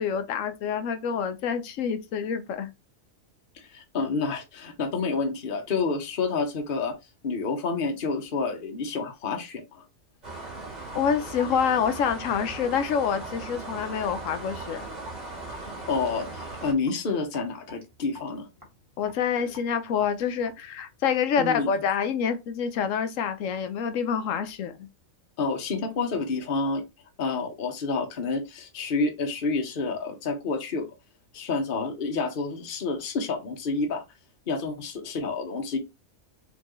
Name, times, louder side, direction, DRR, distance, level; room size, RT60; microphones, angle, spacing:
voice 1, 0.0-2.7 10.9-14.9 19.0-24.9, left 7 dB, 75° left, 1.1 m, -27 dB
voice 2, 3.5-6.9 7.2-9.8 15.5-15.6 15.9-18.5 21.4-21.7 25.4-26.8 27.2-30.9 31.3-34.0 34.5-35.8, left 4 dB, 45° left, 1.0 m, -29 dB
sound 1, 10.2-16.7, right 3 dB, 30° right, 1.9 m, -38 dB
Raindrop / Drip, 10.9-21.4, right 1 dB, 15° right, 1.9 m, -49 dB
4.4 x 3.9 x 3.0 m
omnidirectional pair, 1.4 m